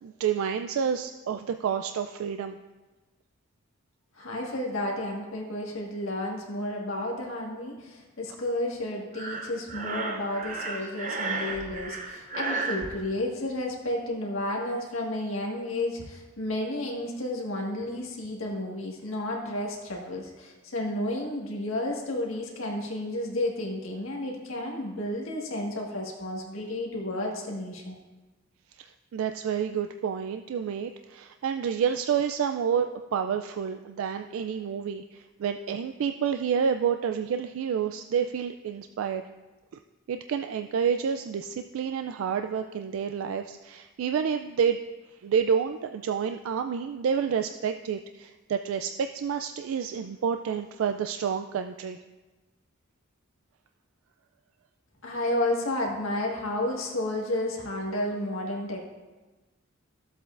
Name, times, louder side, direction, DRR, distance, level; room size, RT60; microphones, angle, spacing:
voice 1, 0.0-2.6 28.8-39.2 40.1-44.8 45.2-52.0, right 7 dB, 75° right, 7 dB, 0.3 m, -29 dB
voice 2, 4.1-28.0 55.0-58.9, left 1 dB, 75° left, -1 dB, 1.6 m, -32 dB
Breathing, 9.1-12.9, right 3 dB, 35° right, 0.8 m, -33 dB
13.5 x 7.8 x 2.5 m, 1.2 s
head